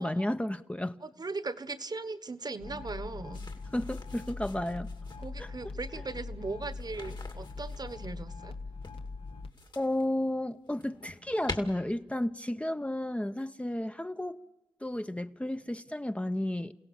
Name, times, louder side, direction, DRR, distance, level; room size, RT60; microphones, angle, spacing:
voice 1, 0.0-1.0 3.7-4.9 5.4-5.5 9.8-14.4 14.8-16.7, left 1 dB, 15° left, 0.7 m, -32 dB
voice 2, 1.0-3.4 5.2-8.5, right 3 dB, 45° right, 1.2 m, -38 dB
sound 1, 2.6-9.5, left 3 dB, 70° left, 1.3 m, -41 dB
sound 2, 3.3-5.3 6.7-8.0 8.8-10.1 10.5-11.6, left 3 dB, 50° left, 2.3 m, -44 dB
28.5 x 16.5 x 7.1 m
cardioid pair, 55°, 10 cm